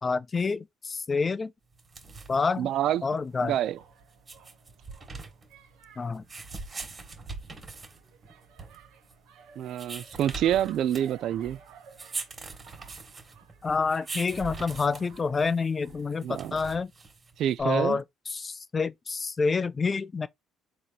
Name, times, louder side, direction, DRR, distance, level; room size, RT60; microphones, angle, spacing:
voice 1, 0.0-1.5 2.3-2.7 3.0-3.5 6.0-6.2 13.6-16.9 17.6-18.0 18.3-20.3, left 4 dB, 25° left, 0.4 m, -28 dB
sound 1, 1.7-17.6, right 3 dB, 25° right, 1.7 m, -43 dB
voice 2, 2.6-3.0 3.4-3.8 9.6-11.6 16.2-16.5 17.4-18.0, right 11 dB, 60° right, 0.3 m, -27 dB
sound 2, 3.1-16.1, right 8 dB, 85° right, 1.1 m, -56 dB
4.1 x 3.0 x 4.0 m
cardioid pair, 125°, 0 cm